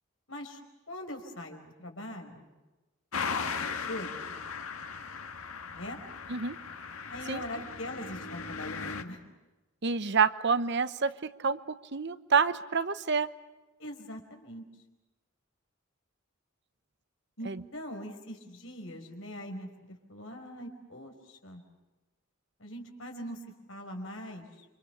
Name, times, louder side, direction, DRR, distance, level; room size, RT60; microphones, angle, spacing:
voice 1, 0.3-0.6 0.9-2.5 3.6-4.1 5.7-6.0 7.1-9.2 13.8-14.6 17.4-19.7 20.1-21.6 22.6-23.4 23.7-24.6, left 1 dB, 65° left, 4 dB, 5.1 m, -42 dB
sound 1, 3.1-9.0, left 5 dB, 85° left, 1.8 m, -37 dB
voice 2, 9.8-11.1 11.4-11.6 11.9-13.3 17.5-17.6, right 5 dB, 55° right, 13 dB, 1.0 m, -27 dB
29.5 x 26.0 x 6.9 m, 1.1 s
head